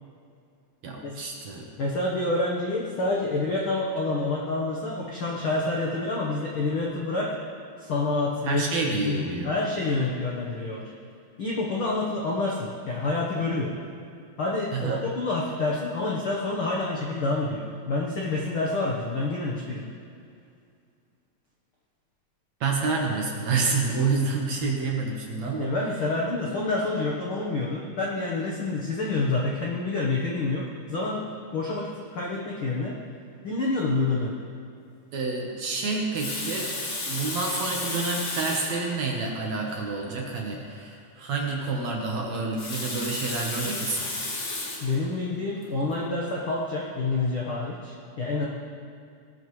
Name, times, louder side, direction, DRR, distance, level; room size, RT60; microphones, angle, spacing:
voice 1, 0.8-1.7 8.4-9.5 14.7-15.1 22.6-25.8 35.1-36.7 37.1-44.1, right 4 dB, 60° right, -1 dB, 2.0 m, -28 dB
voice 2, 1.8-7.4 7.8-10.9 11.4-13.8 14.4-19.9 25.6-31.3 31.5-33.0 33.4-34.4 44.8-48.4, left 2 dB, 90° left, -3 dB, 1.1 m, -28 dB
Water tap faucet, 36.0-38.9 39.7-39.8 40.0-40.1 42.3-44.9 45.6-45.8, left 2 dB, 45° left, 2.4 m, -33 dB
18.5 x 13.5 x 3.2 m, 2.3 s
omnidirectional pair, 4.3 m